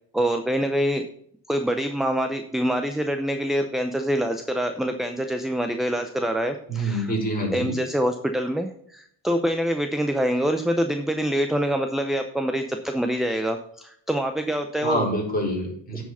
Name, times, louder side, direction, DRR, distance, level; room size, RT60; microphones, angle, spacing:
voice 1, 0.1-1.0 1.5-7.1 7.5-15.1, equal, ahead, 6 dB, 0.5 m, -25 dB
voice 2, 6.7-7.8 14.8-16.0, equal, 20° left, -3 dB, 4.1 m, -26 dB
10.0 x 4.9 x 5.5 m, 0.68 s
cardioid pair, 115°, 45 cm